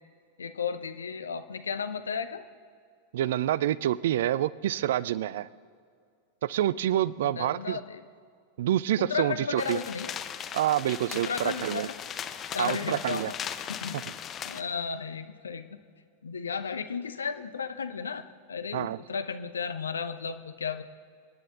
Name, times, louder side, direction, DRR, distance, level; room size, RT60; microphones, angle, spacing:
voice 1, 0.4-2.4 7.2-8.0 9.0-10.1 11.1-11.9 12.5-13.3 13.7-14.0 14.4-15.8 16.2-20.8, left 6 dB, 70° left, 10 dB, 0.7 m, -34 dB
voice 2, 3.1-5.5 6.4-7.8 8.6-9.8 10.5-11.9 12.6-13.3 18.7-19.0, right 12 dB, 55° right, 21 dB, 0.4 m, -27 dB
sound 1, 9.6-14.6, left 8 dB, 25° left, 0.8 m, -38 dB
28.0 x 9.7 x 3.6 m, 2.2 s
figure-of-eight pair, 90°, 0 cm